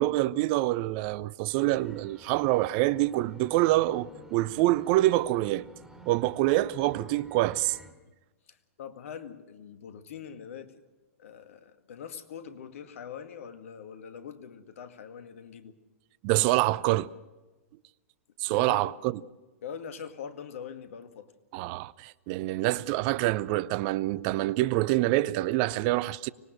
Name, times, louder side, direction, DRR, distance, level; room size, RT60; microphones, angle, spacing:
voice 1, 0.0-5.7 6.1-7.8 16.2-17.1 18.4-19.2 21.5-26.3, right 17 dB, 40° right, 0.7 m, -26 dB
sound 1, 1.5-7.9, right 1 dB, 5° right, 3.2 m, -52 dB
voice 2, 8.5-10.8 11.2-15.8 18.5-18.9 19.6-21.3, left 7 dB, 60° left, 2.0 m, -43 dB
24.5 x 19.0 x 6.3 m
hypercardioid pair, 110°, 8 cm